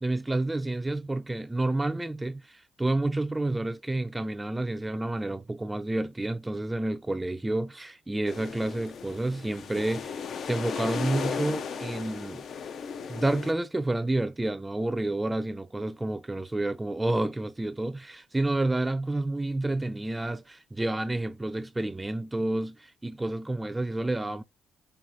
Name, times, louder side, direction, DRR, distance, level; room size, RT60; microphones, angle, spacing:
voice 1, 0.0-12.4 13.1-24.4, right 2 dB, 15° right, 0.3 m, -29 dB
sound 1, 8.3-13.5, left 6 dB, 60° left, 0.5 m, -36 dB
4.6 x 3.3 x 2.6 m
cardioid pair, 90°, 0 cm